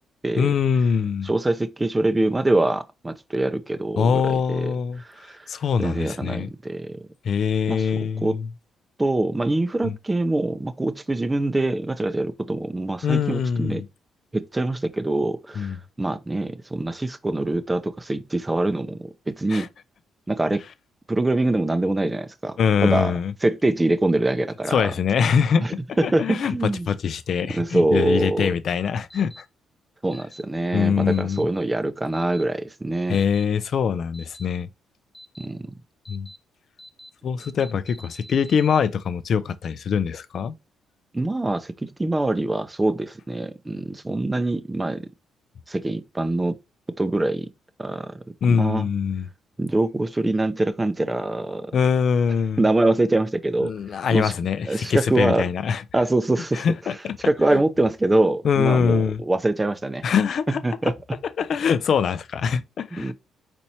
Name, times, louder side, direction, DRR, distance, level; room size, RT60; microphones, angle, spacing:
voice 1, 0.4-1.3 4.0-5.0 5.5-6.5 7.2-8.5 9.8-9.9 13.0-13.8 15.6-15.8 19.5-19.7 22.6-23.3 24.7-26.5 26.9-29.4 30.7-31.5 33.1-34.7 36.1-36.3 37.2-40.5 48.4-49.3 51.7-52.6 53.6-55.8 56.5-57.2 57.5-57.6 58.4-59.2 60.0-60.6 61.4-63.1, left 6 dB, 60° left, 0.4 m, -23 dB
voice 2, 1.2-5.4 5.8-7.0 7.7-7.9 8.2-8.4 9.0-13.8 14.3-19.7 20.3-20.6 21.1-23.1 23.4-24.9 25.6-26.9 27.5-28.5 30.0-33.2 35.4-35.7 41.1-45.0 45.7-46.6 47.0-47.5 47.8-48.9 49.6-51.7 52.6-54.3 54.6-55.5 55.9-56.6 57.2-60.0 60.5-61.2 63.0-63.1, right 2 dB, 15° right, 0.5 m, -24 dB
sound 1, 29.1-29.4 30.1-30.4 31.1-31.4 32.1-32.4 33.1-33.4 34.1-34.5 35.1-35.5 36.1-36.4 36.8-37.1 37.4-38.8, equal, 20° left, 0.7 m, -45 dB
4.3 x 4.2 x 2.8 m
cardioid pair, 90°, 0 cm